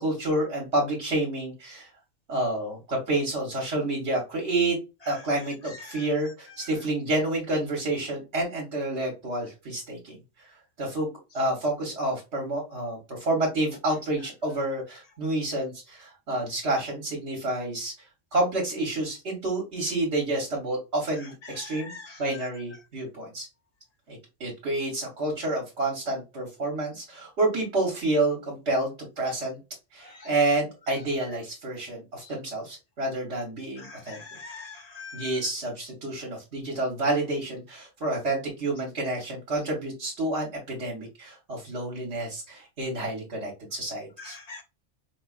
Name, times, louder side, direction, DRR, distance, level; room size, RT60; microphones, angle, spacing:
voice 1, 0.0-1.9 2.3-4.8 5.1-11.1 11.3-17.9 18.3-21.9 22.2-23.5 24.1-29.6 29.9-34.2 35.1-44.4, right 2 dB, 65° right, -2 dB, 1.5 m, -29 dB
voice 2, 5.6-6.0 21.4-22.2 30.0-30.3 32.2-32.3 33.8-35.4 44.2-44.6, left 4 dB, 80° left, 6 dB, 0.3 m, -43 dB
5.1 x 2.4 x 2.3 m, 0.28 s
omnidirectional pair, 1.2 m